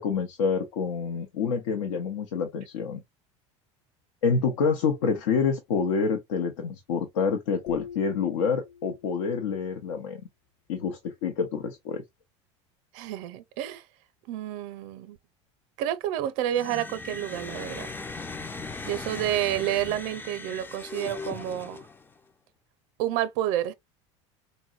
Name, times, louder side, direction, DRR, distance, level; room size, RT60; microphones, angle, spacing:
voice 1, 0.0-3.0 4.2-10.2 10.7-12.0, left 5 dB, 85° left, 0.7 m, -27 dB
sound 1, 7.7-9.4, left 7 dB, 70° left, 1.0 m, -43 dB
voice 2, 12.9-13.8 14.3-15.2 15.8-17.9 18.9-21.9 23.0-23.7, right 12 dB, 65° right, 0.6 m, -29 dB
sound 2, 16.5-22.2, left 3 dB, 15° left, 0.4 m, -38 dB
3.9 x 2.1 x 2.3 m
hypercardioid pair, 90°, 15 cm